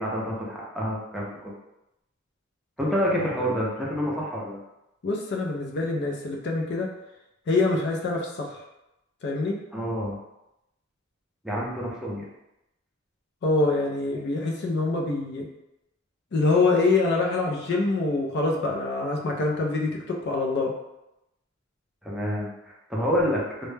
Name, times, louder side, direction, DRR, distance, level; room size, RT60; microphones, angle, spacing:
voice 1, 0.0-1.5 2.8-4.6 9.7-10.2 11.4-12.3 22.0-23.7, equal, ahead, -6 dB, 0.5 m, -28 dB
voice 2, 5.0-6.9 7.5-8.5 9.2-9.6 13.4-15.5 16.3-20.7, left 3 dB, 55° left, 0 dB, 0.4 m, -25 dB
2.1 x 2.0 x 3.1 m, 0.89 s
head